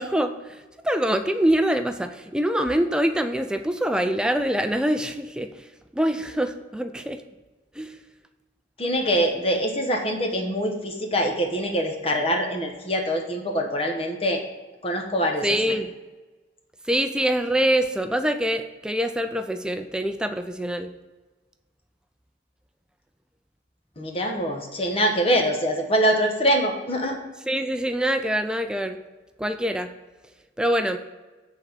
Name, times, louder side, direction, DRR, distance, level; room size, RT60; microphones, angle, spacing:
voice 1, 0.0-5.7 5.9-7.2 7.8-7.9 15.4-15.9 16.9-20.9 27.5-29.0 29.4-29.9 30.6-31.0, right 1 dB, 5° right, 7 dB, 0.4 m, -24 dB
voice 2, 8.8-14.4 14.8-15.7 24.0-27.2, equal, 30° left, 3 dB, 1.1 m, -24 dB
8.4 x 4.1 x 6.9 m, 1.2 s
head